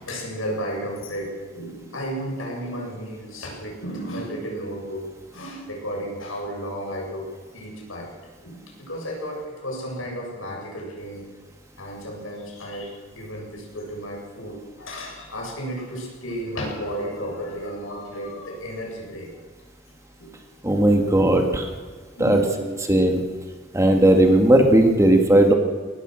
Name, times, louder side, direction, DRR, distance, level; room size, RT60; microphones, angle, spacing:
voice 1, 0.0-5.0 5.3-7.3 7.5-8.1 8.4-11.3 11.8-19.3 20.2-20.3 22.2-22.8, equal, 85° left, -1 dB, 7.7 m, -33 dB
voice 2, 20.6-21.7 22.2-22.4 22.9-23.2 23.7-25.5, right 1 dB, 15° right, 4 dB, 2.1 m, -16 dB
23.0 x 19.0 x 6.5 m, 1.5 s
head